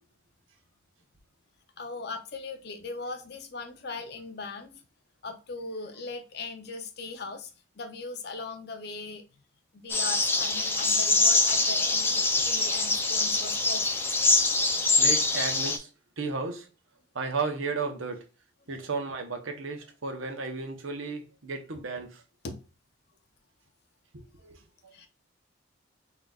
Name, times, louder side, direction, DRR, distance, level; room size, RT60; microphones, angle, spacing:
voice 1, 1.8-4.8 5.2-7.5 7.8-9.2 9.7-13.8 22.4-22.6 24.9-25.1, left 3 dB, 55° left, 0.7 m, -39 dB
sound 1, 9.9-15.8, left 3 dB, 10° left, 0.3 m, -24 dB
voice 2, 15.0-15.9 16.2-16.7 17.1-18.2 18.7-22.2 24.1-24.9, right 4 dB, 90° right, 0.9 m, -34 dB
4.0 x 3.7 x 2.3 m
head